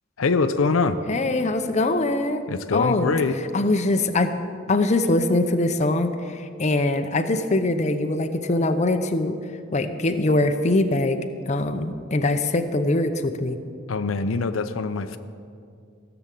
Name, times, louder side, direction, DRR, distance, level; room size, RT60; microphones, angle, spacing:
voice 1, 0.2-1.0 2.5-3.4 13.9-15.2, left 4 dB, 90° left, 10 dB, 0.6 m, -23 dB
voice 2, 1.1-2.4 2.7-3.1 3.5-4.3 4.7-9.4 9.7-11.2 11.5-13.6, left 2 dB, 35° left, 8 dB, 0.6 m, -22 dB
16.0 x 6.9 x 7.6 m, 2.4 s
head